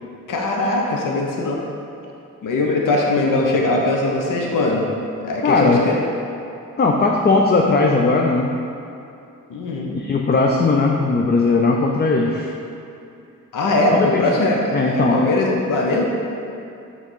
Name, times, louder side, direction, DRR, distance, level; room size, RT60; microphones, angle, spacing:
voice 1, 0.3-1.6 2.4-4.9 5.2-6.0 9.5-10.0 13.5-16.0, left 2 dB, 70° left, -1 dB, 0.9 m, -20 dB
voice 2, 5.4-5.9 6.8-8.6 9.9-12.5 13.9-14.3 14.7-15.3, left 3 dB, 30° left, 1 dB, 0.5 m, -18 dB
6.1 x 3.7 x 5.5 m, 2.6 s
cardioid pair, 75°, 33 cm